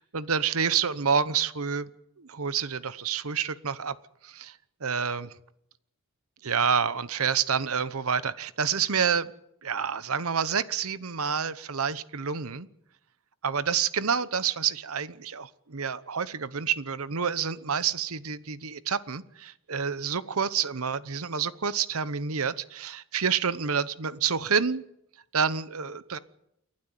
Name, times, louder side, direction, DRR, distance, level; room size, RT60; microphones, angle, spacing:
voice 1, 0.0-1.9 2.2-3.9 4.2-4.6 4.8-5.3 6.4-9.3 9.6-12.7 13.4-24.8 25.3-26.2, right 6 dB, 75° right, 15 dB, 1.0 m, -28 dB
29.0 x 12.0 x 9.2 m, 0.79 s
head